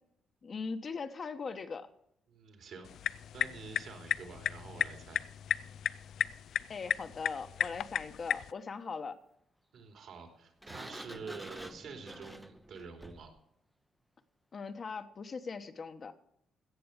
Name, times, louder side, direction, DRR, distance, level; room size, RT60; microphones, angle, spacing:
voice 1, 0.4-1.9 6.7-9.2 14.5-16.1, left 5 dB, 45° left, 8 dB, 1.1 m, -40 dB
voice 2, 2.3-5.2 9.7-13.3, right 5 dB, 70° right, 4 dB, 3.1 m, -48 dB
sound 1, 2.8-8.5, left 9 dB, 70° left, 0.4 m, -35 dB
Sliding door, 10.6-13.4, equal, ahead, 0.7 m, -48 dB
16.5 x 6.9 x 6.7 m, 0.73 s
cardioid pair, 90°, 0 cm